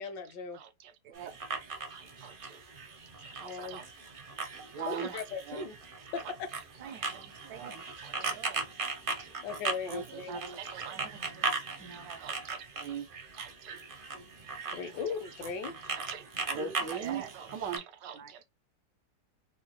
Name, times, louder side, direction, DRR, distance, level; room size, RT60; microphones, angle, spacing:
voice 1, 0.0-0.6 3.4-3.8 4.9-5.8 6.1-6.5 9.4-10.3 14.7-15.8, left 5 dB, 80° left, 1.4 m, -38 dB
voice 2, 0.5-1.4 1.7-2.6 3.2-3.8 4.6-5.7 6.8-7.7 8.0-8.6 9.2-9.3 9.8-11.0 11.4-11.6 12.2-13.1 13.3-13.8 14.9-15.0 15.4-15.5 15.9-18.4, right 7 dB, 85° right, 1.4 m, -42 dB
sound 1, 1.2-17.8, right 4 dB, 45° right, 0.7 m, -39 dB
voice 3, 6.8-7.9 8.1-9.3 9.8-10.6 10.9-11.5 11.8-12.3 14.1-15.0 16.5-17.3 18.1-18.3, right 5 dB, 70° right, 1.0 m, -46 dB
3.8 x 2.2 x 2.9 m
omnidirectional pair, 1.9 m